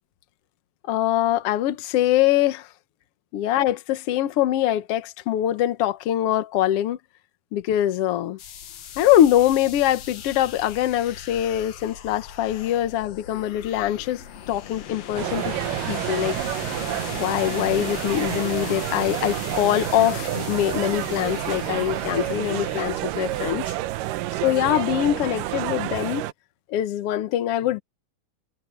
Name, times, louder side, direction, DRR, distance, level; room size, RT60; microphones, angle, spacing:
voice 1, 0.9-2.7 3.3-7.0 7.5-8.4 9.0-15.6 15.9-16.4 17.1-23.7 24.4-26.3 26.7-27.8, left 12 dB, 85° left, 1.3 m, -23 dB
sound 1, 8.4-23.7, left 8 dB, 55° left, 2.2 m, -38 dB
sound 2, 15.2-26.3, right 15 dB, 75° right, 2.2 m, -29 dB
omnidirectional pair, 4.2 m